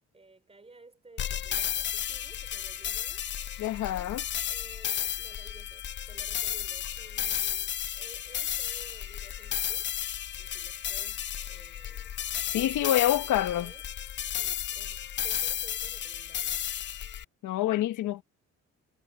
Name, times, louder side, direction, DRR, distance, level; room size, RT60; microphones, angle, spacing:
voice 1, 0.1-3.2 3.8-9.9 10.4-12.2 12.6-13.8 14.3-16.5, right 3 dB, 20° right, 3.8 m, -55 dB
sound 1, 1.2-17.2, left 10 dB, 40° left, 0.4 m, -33 dB
voice 2, 3.6-4.2 12.5-13.7 17.4-18.2, left 13 dB, 80° left, 1.2 m, -27 dB
cardioid pair, 90°, 30 cm